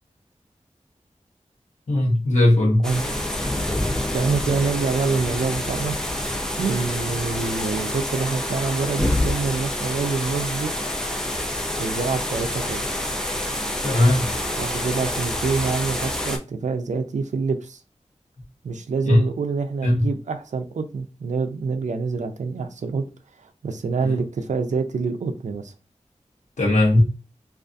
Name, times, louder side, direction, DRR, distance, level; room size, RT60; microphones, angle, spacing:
voice 1, 1.9-2.9 13.8-14.3 19.1-19.2 19.8-20.1 26.6-27.0, left 1 dB, 80° left, 0.9 m, -18 dB
sound 1, 2.8-16.4, left 1 dB, 5° left, 0.4 m, -27 dB
voice 2, 4.1-6.0 6.6-10.7 11.8-12.9 14.6-17.8 18.6-23.0 23.4-25.7, right 4 dB, 80° right, 0.4 m, -26 dB
2.5 x 2.4 x 2.3 m
wide cardioid pair, 85°, 12 cm